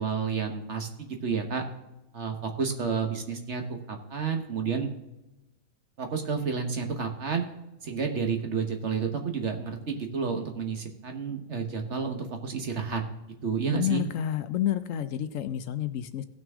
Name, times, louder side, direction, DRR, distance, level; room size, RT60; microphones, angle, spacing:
voice 1, 0.0-1.6 2.1-4.9 6.0-7.4 7.8-13.0 13.4-14.0, right 5 dB, 55° right, 5 dB, 1.5 m, -30 dB
voice 2, 13.7-16.2, left 11 dB, 70° left, 12 dB, 0.9 m, -29 dB
17.0 x 6.1 x 3.6 m, 0.96 s
omnidirectional pair, 1.5 m